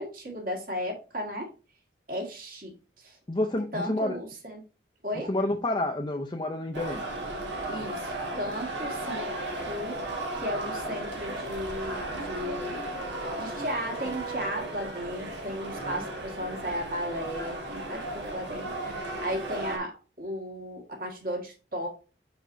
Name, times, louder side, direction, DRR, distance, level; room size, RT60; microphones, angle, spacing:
voice 1, 0.0-1.5 2.1-3.2 3.7-4.6 5.0-5.3 7.7-9.3 9.6-12.9 13.4-21.9, equal, 50° right, 1 dB, 1.7 m, -35 dB
voice 2, 3.3-4.2 5.3-7.0 15.8-16.1, left 1 dB, 25° left, 2 dB, 0.5 m, -29 dB
sound 1, 6.7-19.8, right 2 dB, 90° right, 1.7 m, -35 dB
6.1 x 5.8 x 2.6 m, 0.33 s
head